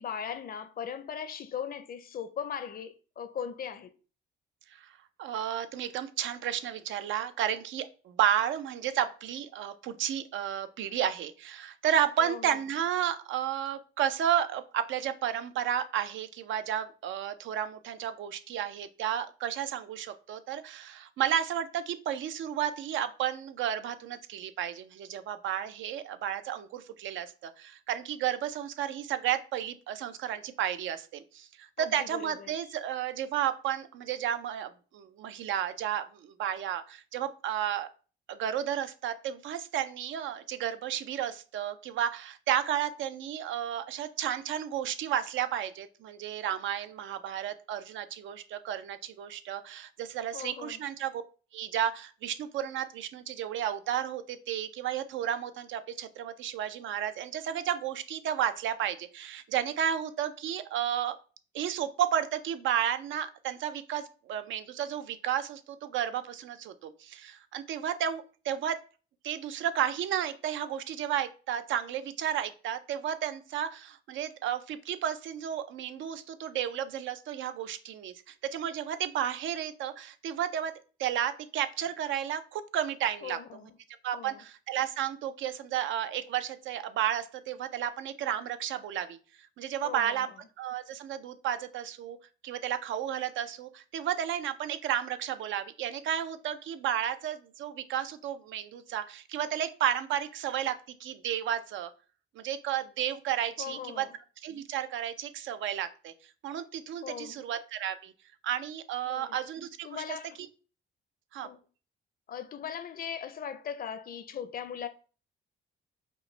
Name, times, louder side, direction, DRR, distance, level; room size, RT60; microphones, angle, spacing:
voice 1, 0.0-3.9 12.2-12.6 31.8-32.6 50.3-50.8 83.2-83.8 84.1-84.4 89.8-90.3 103.6-104.2 107.0-107.5 109.1-109.4 109.8-110.4 111.4-111.6 112.3-114.9, left 8 dB, 50° left, 0.5 m, -39 dB
voice 2, 5.2-37.9 38.3-51.2 51.5-61.2 61.5-68.8 69.2-80.7 81.0-83.4 84.0-89.2 89.6-90.3 90.6-92.2 92.4-101.9 102.4-104.0 104.4-106.1 106.4-108.1 108.4-110.2 111.3-111.5, right 10 dB, 75° right, 0.5 m, -32 dB
5.2 x 2.1 x 3.2 m
cardioid pair, 90°, 20 cm